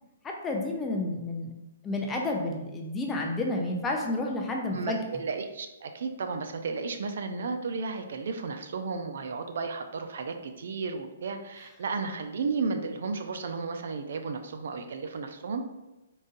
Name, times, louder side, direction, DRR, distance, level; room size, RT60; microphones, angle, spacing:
voice 1, 0.2-1.5 1.8-5.0, left 2 dB, 10° left, 1 dB, 0.4 m, -30 dB
voice 2, 4.7-15.6, right 4 dB, 60° right, 6 dB, 0.4 m, -33 dB
3.8 x 2.6 x 3.8 m, 0.99 s
hypercardioid pair, 165°, 0 cm